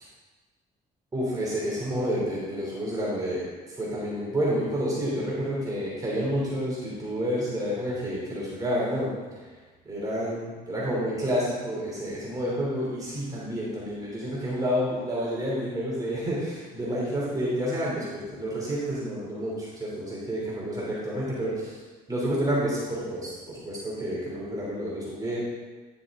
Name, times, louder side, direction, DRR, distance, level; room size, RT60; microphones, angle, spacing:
voice 1, 1.1-9.5 9.8-21.8 22.1-25.4, equal, 20° right, -6 dB, 3.1 m, -29 dB
10.5 x 6.7 x 3.7 m, 1.3 s
cardioid pair, 110°, 17 cm